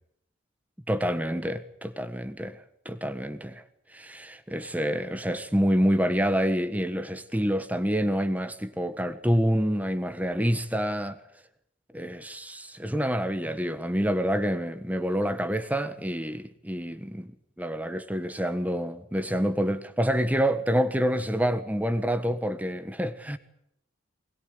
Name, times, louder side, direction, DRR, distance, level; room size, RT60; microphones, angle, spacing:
voice 1, 0.9-2.6 2.8-3.6 3.9-11.2 11.9-17.3 17.6-23.4, equal, 10° right, 1.4 m, -27 dB
24.0 x 21.0 x 9.7 m
head